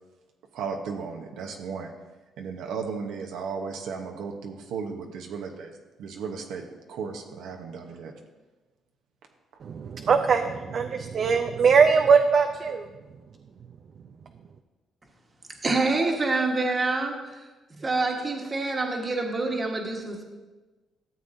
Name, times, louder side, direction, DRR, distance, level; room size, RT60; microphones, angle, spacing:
voice 1, 0.5-1.9 2.4-5.7 6.0-8.1, right 5 dB, 85° right, 3 dB, 0.9 m, -35 dB
voice 2, 9.6-12.9, right 5 dB, 55° right, 5 dB, 0.5 m, -21 dB
voice 3, 15.6-17.4 17.8-20.2, right 3 dB, 30° right, 2 dB, 1.3 m, -26 dB
13.5 x 7.4 x 2.7 m, 1.2 s
cardioid pair, 90°, 0 cm